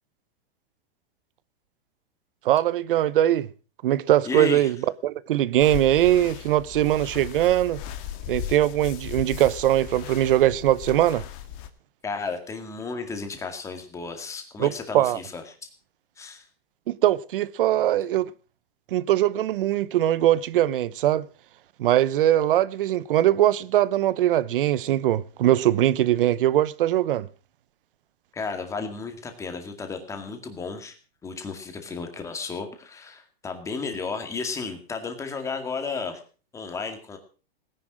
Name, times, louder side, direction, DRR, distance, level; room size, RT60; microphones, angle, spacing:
voice 1, 2.4-3.5 3.8-4.8 5.0-7.8 8.3-11.2 14.6-15.2 16.9-18.3 18.9-21.2 21.8-27.3, right 13 dB, 60° right, 0.9 m, -21 dB
voice 2, 4.2-4.7 12.0-15.4 16.2-16.5 28.3-30.9 31.2-36.2 36.5-37.2, left 4 dB, 10° left, 2.1 m, -33 dB
sound 1, 5.6-11.7, left 10 dB, 35° left, 1.7 m, -37 dB
18.0 x 10.5 x 6.2 m
supercardioid pair, 165°, 30 cm